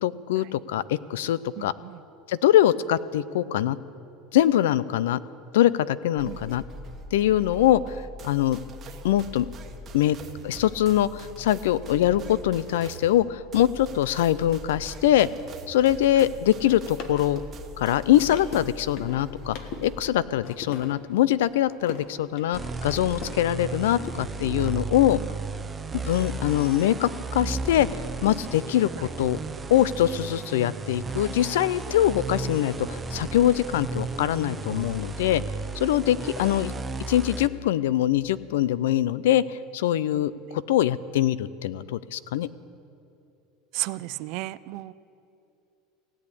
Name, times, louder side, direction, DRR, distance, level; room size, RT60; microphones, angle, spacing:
voice 1, 0.0-1.7 2.3-3.8 4.3-5.2 5.5-6.6 7.1-8.6 9.0-9.5 9.9-10.2 10.4-15.3 15.7-17.4 17.8-19.6 19.8-25.2 26.0-27.9 28.2-29.4 29.7-35.4 35.8-36.7 37.1-42.5, left 12 dB, 90° left, 18 dB, 0.4 m, -23 dB
voice 2, 1.6-2.0 6.3-6.4 43.7-44.9, right 19 dB, 60° right, 18 dB, 0.4 m, -33 dB
sound 1, 6.2-20.0, equal, 35° right, 1.2 m, -42 dB
sound 2, 16.4-23.4 23.7-25.2, left 5 dB, 60° left, 1.4 m, -42 dB
sound 3, 22.5-37.5, right 3 dB, 15° right, 0.7 m, -34 dB
17.0 x 8.5 x 8.5 m, 2.7 s
supercardioid pair, 125°, 0 cm